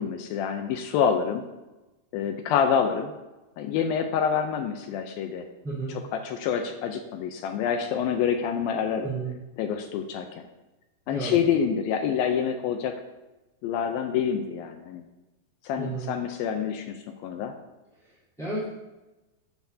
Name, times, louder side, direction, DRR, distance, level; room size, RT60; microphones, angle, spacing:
voice 1, 0.0-1.4 2.1-3.1 3.6-5.5 6.1-9.1 9.6-10.4 11.1-13.0 13.6-15.0 15.6-17.5, left 7 dB, 80° left, 5 dB, 2.4 m, -27 dB
voice 2, 5.6-5.9 9.0-9.3 11.1-11.3 15.8-16.1 18.0-18.7, right 3 dB, ahead, -13 dB, 2.9 m, -32 dB
15.0 x 8.2 x 2.7 m, 1.1 s
omnidirectional pair, 4.3 m